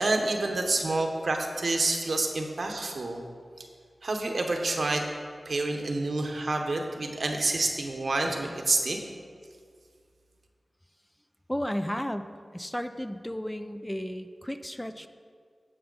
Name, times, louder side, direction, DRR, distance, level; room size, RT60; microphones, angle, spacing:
voice 1, 0.0-3.2 4.0-5.0 5.4-9.0, right 2 dB, 75° right, 3 dB, 1.1 m, -28 dB
voice 2, 11.5-15.1, equal, 10° left, 9 dB, 0.4 m, -33 dB
15.5 x 5.7 x 4.0 m, 2.1 s
wide cardioid pair, 70°, 0 cm